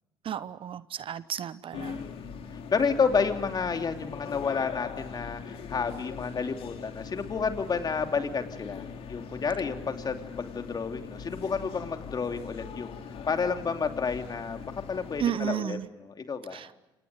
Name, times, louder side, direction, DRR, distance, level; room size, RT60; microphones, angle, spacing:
voice 1, 0.2-2.0 15.2-15.9 16.5-16.8, right 10 dB, 45° right, 1.0 m, -33 dB
sound 1, 1.7-15.3, left 6 dB, 55° left, 3.1 m, -41 dB
voice 2, 1.9-12.9 13.3-14.6 14.9-16.6, left 5 dB, 35° left, 2.9 m, -30 dB
28.5 x 27.5 x 5.0 m
hypercardioid pair, 55°, 12 cm